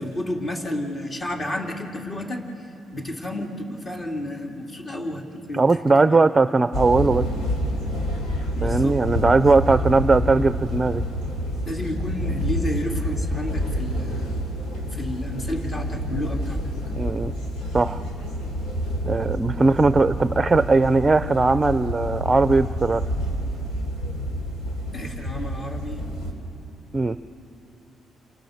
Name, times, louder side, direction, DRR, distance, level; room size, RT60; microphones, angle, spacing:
voice 1, 0.0-2.7 2.9-6.2 8.5-9.0 9.4-9.6 11.6-14.3 14.9-16.6 24.9-26.1, left 1 dB, 35° left, 1 dB, 3.0 m, -31 dB
voice 2, 5.5-7.3 8.6-11.0 17.0-17.3 17.7-18.0 19.1-23.0 26.9-27.2, right 3 dB, 25° right, 12 dB, 0.6 m, -19 dB
sound 1, 6.7-26.3, equal, 90° left, 4.1 m, -28 dB
29.5 x 28.0 x 6.6 m, 2.8 s
cardioid pair, 90°, 0 cm